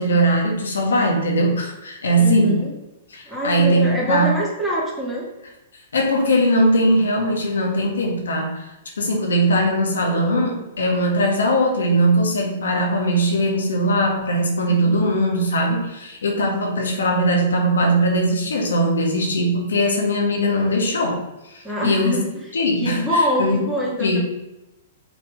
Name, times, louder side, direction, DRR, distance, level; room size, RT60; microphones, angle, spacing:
voice 1, 0.0-2.6 3.1-4.3 5.9-8.7 9.0-21.2 21.5-22.2 22.5-23.6 24.0-24.2, equal, 90° left, 1 dB, 1.6 m, -20 dB
voice 2, 2.2-2.7 3.3-5.3 14.6-15.1 21.6-22.3 22.8-24.2, equal, ahead, -5 dB, 1.9 m, -24 dB
5.9 x 3.5 x 5.0 m, 0.96 s
hypercardioid pair, 135°, 0 cm